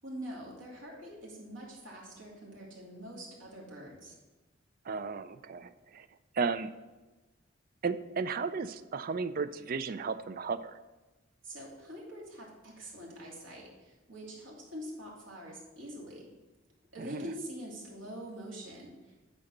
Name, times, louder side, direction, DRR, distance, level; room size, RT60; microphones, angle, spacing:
voice 1, 0.0-4.1 11.4-16.3 16.9-19.2, equal, 90° right, -4 dB, 2.7 m, -44 dB
voice 2, 4.9-6.1 6.4-6.7 7.8-10.7 17.0-17.3, right 5 dB, 45° right, 12 dB, 0.4 m, -34 dB
9.6 x 4.1 x 6.5 m, 1.2 s
head